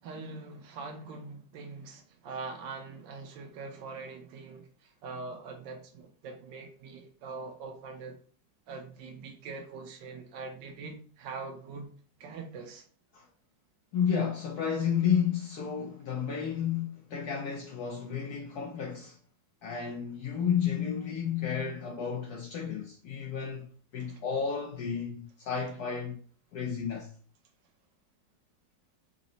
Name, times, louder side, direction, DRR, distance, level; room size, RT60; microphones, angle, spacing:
voice 1, 0.0-8.2 8.7-11.9 12.2-12.8 24.0-24.2, right 4 dB, 85° right, 1.3 m, -43 dB
voice 2, 13.9-19.2 19.6-23.7 23.9-26.2 26.5-27.1, left 7 dB, 70° left, 1.1 m, -32 dB
3.9 x 2.0 x 3.9 m
omnidirectional pair, 2.0 m